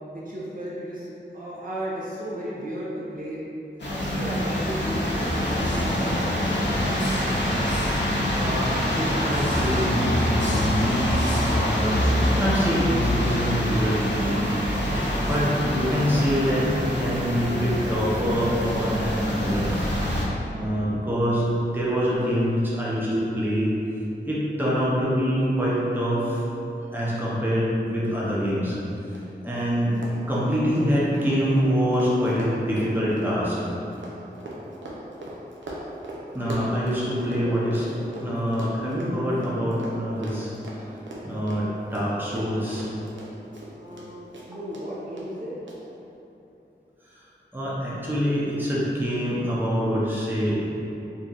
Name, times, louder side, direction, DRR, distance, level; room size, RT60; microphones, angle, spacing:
voice 1, 0.1-1.1 1.3-3.4 3.9-6.9 37.3-37.7 43.7-45.6, right 1 dB, 45° right, -8 dB, 0.7 m, -35 dB
sound 1, 3.8-20.3, left 1 dB, 70° left, 0.6 m, -25 dB
voice 2, 8.3-11.0 11.4-14.5 15.1-19.9 20.5-21.5 21.7-23.7 24.2-26.4 26.9-28.7 29.4-30.0 30.3-33.6 36.3-37.9 38.2-40.5 41.2-42.9 47.5-50.7, equal, 10° right, -8 dB, 0.7 m, -25 dB
Run, 29.1-29.2 29.5-29.6 29.9-37.4 37.7-44.1 44.3-44.8 45.2-45.3 45.7-45.8, right 1 dB, 85° right, 0.5 m, -39 dB
2.7 x 2.4 x 3.8 m, 2.9 s
wide cardioid pair, 50°, 19 cm